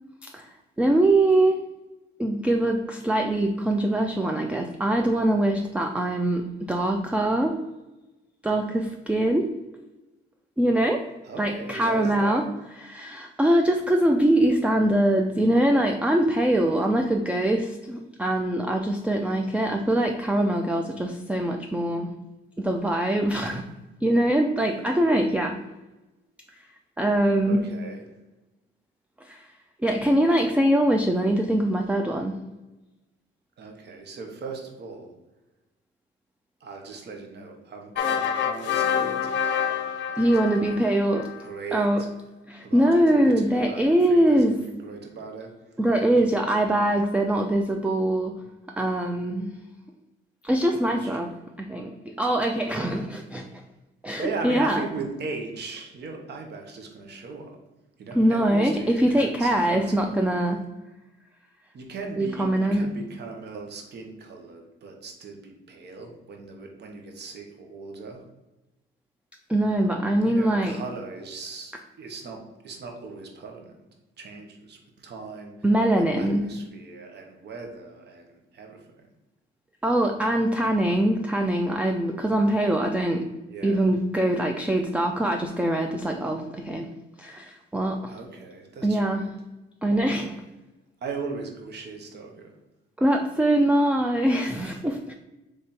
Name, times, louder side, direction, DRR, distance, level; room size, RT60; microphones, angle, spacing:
voice 1, 0.8-1.6 2.2-7.5 8.4-9.5 10.6-11.0 11.4-12.4 12.8-22.1 22.6-23.7 24.0-25.6 27.0-27.7 29.2-29.4 29.8-32.4 40.2-41.3 41.7-42.0 42.5-44.6 45.8-48.4 48.8-49.6 50.4-51.3 51.6-53.6 54.0-54.8 58.1-60.7 62.2-62.9 69.5-70.8 75.6-76.5 79.8-83.3 83.6-86.9 87.2-88.1 88.8-89.3 89.8-90.4 93.0-95.1, right 1 dB, 5° right, 3 dB, 0.4 m, -23 dB
voice 2, 11.2-12.5 27.4-28.0 33.6-35.1 36.6-41.0 41.4-42.1 42.6-45.7 46.2-46.8 50.9-51.3 54.2-57.6 58.0-60.3 61.7-68.2 70.2-73.7 74.2-75.5 76.0-79.1 83.4-83.8 88.1-89.3 89.9-90.2 91.0-92.5, right 4 dB, 60° right, 2 dB, 1.0 m, -38 dB
sound 1, 37.9-41.4, left 8 dB, 65° left, 0.6 m, -27 dB
3.6 x 3.4 x 4.2 m, 1.0 s
cardioid pair, 90°, 20 cm